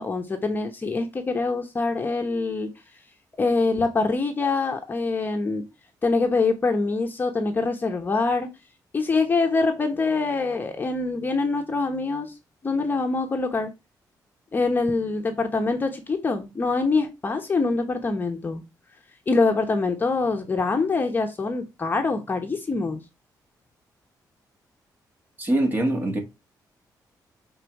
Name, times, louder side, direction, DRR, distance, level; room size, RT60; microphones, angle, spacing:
voice 1, 0.0-2.7 3.4-5.6 6.0-8.5 8.9-12.3 12.6-13.7 14.5-18.6 19.3-23.0, left 3 dB, 25° left, 1.0 m, -24 dB
voice 2, 25.4-26.2, right 1 dB, 25° right, 1.9 m, -23 dB
6.8 x 3.9 x 4.6 m
cardioid pair, 140°, 7 cm